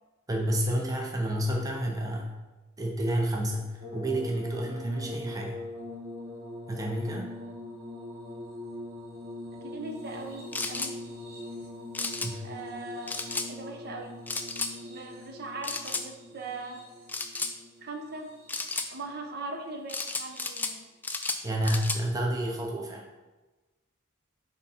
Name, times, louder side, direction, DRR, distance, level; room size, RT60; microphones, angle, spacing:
voice 1, 0.3-2.3 2.8-5.6 6.7-7.3 12.2-12.4 21.4-23.0, right 1 dB, 15° right, 0 dB, 0.7 m, -30 dB
sound 1, 3.8-19.0 19.9-20.6 22.0-22.2, left 1 dB, 70° right, 1.9 m, -42 dB
voice 2, 9.5-11.0 12.4-13.2 13.5-14.2 14.8-16.8 17.8-18.3 18.9-20.9 21.6-21.8, right 2 dB, 50° right, 3 dB, 0.8 m, -40 dB
sound 2, 10.5-10.9 11.9-12.3 13.1-13.5 14.3-14.7 15.6-16.0 17.1-17.5 18.5-18.9 19.9-20.7 21.0-22.0, left 3 dB, 10° left, 0.3 m, -33 dB
8.3 x 3.6 x 4.3 m, 1.2 s
head